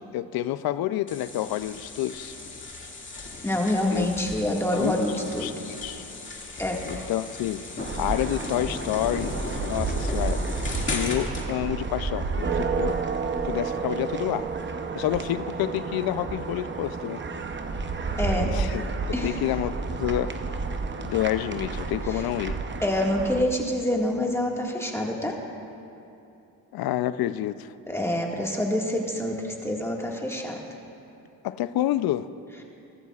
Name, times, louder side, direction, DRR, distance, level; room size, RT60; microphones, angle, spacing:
voice 1, 0.0-2.4 3.9-4.1 4.7-6.0 6.9-7.6 8.0-10.4 10.9-13.0 13.5-14.5 14.9-17.2 18.4-18.8 19.2-20.3 21.0-22.6 26.7-27.7 31.4-32.3, left 13 dB, 70° left, 14 dB, 0.5 m, -28 dB
sound 1, 1.1-11.5, left 3 dB, 30° left, 2.1 m, -37 dB
voice 2, 3.4-5.8 6.6-7.0 18.2-18.5 19.1-19.4 22.1-22.2 22.8-25.4 27.9-30.6, left 1 dB, 5° left, -1 dB, 1.8 m, -27 dB
sound 2, 7.8-23.4, right 4 dB, 30° right, 0.8 m, -30 dB
18.0 x 14.0 x 2.4 m, 2.7 s
cardioid pair, 80°, 37 cm